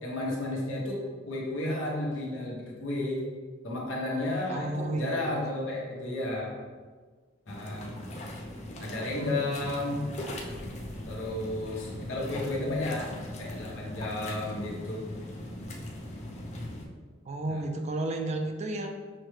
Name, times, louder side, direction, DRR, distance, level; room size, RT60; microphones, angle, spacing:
voice 1, 0.0-3.2 3.6-6.5 7.5-7.9 8.8-10.1 11.1-15.1 17.5-17.6, left 1 dB, 85° left, -3 dB, 1.0 m, -32 dB
voice 2, 4.5-5.4 17.3-18.9, right 2 dB, 35° right, 4 dB, 0.4 m, -32 dB
sound 1, 7.5-16.9, left 1 dB, 35° left, 0.5 m, -40 dB
6.2 x 2.2 x 3.2 m, 1.5 s
head